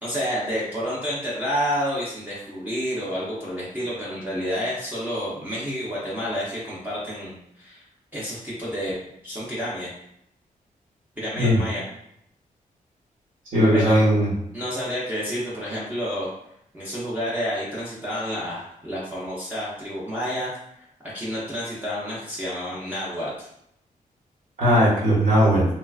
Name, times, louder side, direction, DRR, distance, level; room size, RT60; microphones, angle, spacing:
voice 1, 0.0-7.8 8.1-8.9 9.2-9.9 11.2-11.8 13.7-14.1 14.5-16.3 16.7-20.8 21.1-23.5, equal, 10° right, -8 dB, 0.5 m, -29 dB
voice 2, 13.5-14.3 24.6-25.7, equal, 65° right, -7 dB, 1.3 m, -18 dB
3.1 x 2.3 x 2.3 m, 0.76 s
wide cardioid pair, 175°, 15 cm